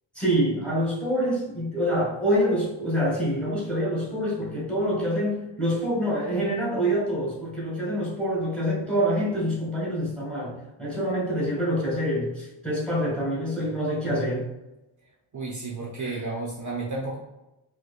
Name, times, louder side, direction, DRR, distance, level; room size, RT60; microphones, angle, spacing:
voice 1, 0.1-14.5 16.0-16.2, equal, ahead, -5 dB, 1.1 m, -26 dB
voice 2, 15.3-17.2, right 3 dB, 40° right, -5 dB, 0.7 m, -32 dB
4.4 x 2.2 x 2.4 m, 0.97 s
wide cardioid pair, 150°, 48 cm